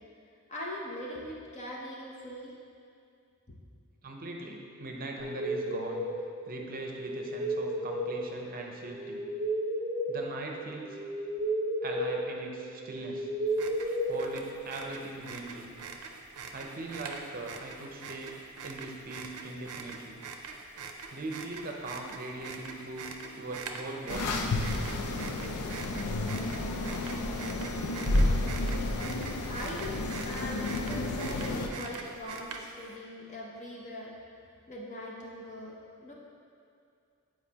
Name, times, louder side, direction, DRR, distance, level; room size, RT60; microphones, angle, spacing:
voice 1, 0.5-2.5 3.5-3.6 29.5-34.1 34.7-36.1, left 1 dB, 30° left, -3 dB, 0.7 m, -41 dB
voice 2, 4.0-6.1 6.5-9.2 10.1-11.0 11.8-13.3 14.1-15.7 16.5-18.3 18.6-20.2 21.1-24.4, right 2 dB, 40° right, 1 dB, 0.6 m, -40 dB
sound 1, 5.2-14.9, right 1 dB, 5° right, 1.1 m, -34 dB
sound 2, 13.5-32.9, right 4 dB, 90° right, 0.5 m, -44 dB
sound 3, 24.1-31.7, left 2 dB, 90° left, 0.5 m, -31 dB
8.1 x 4.5 x 2.9 m, 2.4 s
head